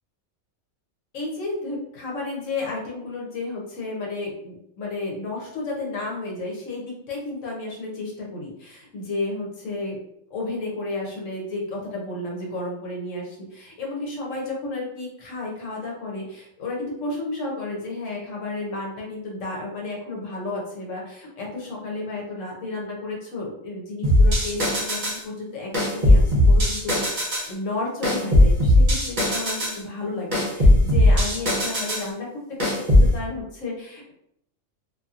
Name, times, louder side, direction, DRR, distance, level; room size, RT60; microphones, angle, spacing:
voice 1, 1.1-10.0 10.3-26.2 26.5-27.2 27.5-34.1, left 2 dB, 75° left, -2 dB, 1.1 m, -32 dB
sound 1, 24.0-25.2 25.7-27.5 28.0-29.8 30.3-32.1 32.6-33.1, left 1 dB, 45° right, 0.8 m, -18 dB
2.7 x 2.6 x 2.4 m, 0.77 s
omnidirectional pair, 1.3 m